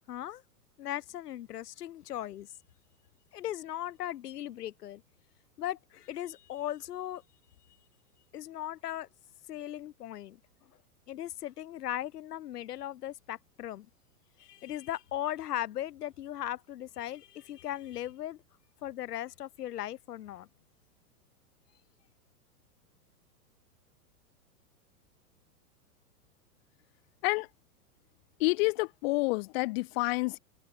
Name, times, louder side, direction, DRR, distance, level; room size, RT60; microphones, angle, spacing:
voice 1, 0.1-0.4 0.8-2.5 3.3-5.0 5.6-7.2 8.3-9.1 9.5-10.4 11.1-13.9 14.4-18.4 18.8-20.5, left 12 dB, 90° left, 0.7 m, -38 dB
voice 2, 28.4-30.4, left 25 dB, 40° left, 0.7 m, -28 dB
open air
hypercardioid pair, 120°, 46 cm